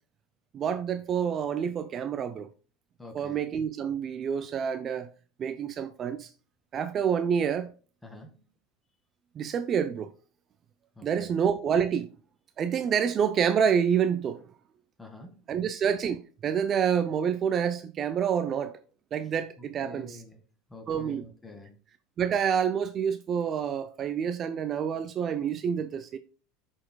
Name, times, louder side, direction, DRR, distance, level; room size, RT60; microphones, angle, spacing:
voice 1, 0.5-2.5 3.1-5.1 5.4-6.3 6.7-7.7 9.4-10.1 11.0-12.1 12.6-14.4 15.5-18.8 19.1-20.2 20.9-21.3 22.2-26.2, right 7 dB, 40° right, 0.5 m, -28 dB
voice 2, 3.0-3.4 8.0-8.4 11.0-11.3 15.0-15.4 19.6-20.4 20.7-21.8, left 2 dB, 10° left, 1.9 m, -47 dB
11.0 x 4.4 x 2.3 m
hypercardioid pair, 90°, 0 cm